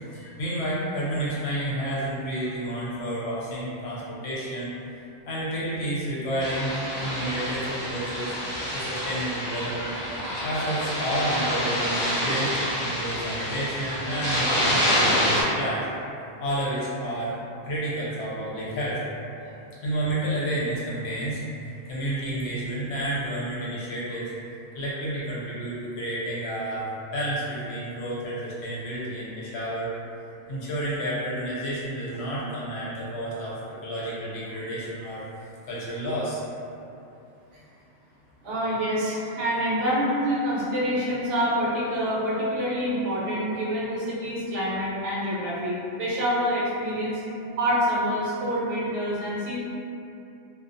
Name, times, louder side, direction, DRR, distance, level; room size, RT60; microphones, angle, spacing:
voice 1, 0.1-4.7 5.3-8.3 8.7-9.9 10.4-15.8 16.4-17.3 17.6-19.0 19.8-24.3 24.7-29.9 30.5-35.2 35.7-36.4, right 1 dB, 65° left, -7 dB, 0.7 m, -30 dB
sound 1, 6.4-15.4, equal, 25° left, 0.7 m, -27 dB
voice 2, 38.4-47.2 47.6-49.6, equal, 70° right, -7 dB, 0.9 m, -27 dB
2.2 x 2.1 x 2.5 m, 2.7 s
omnidirectional pair, 1.3 m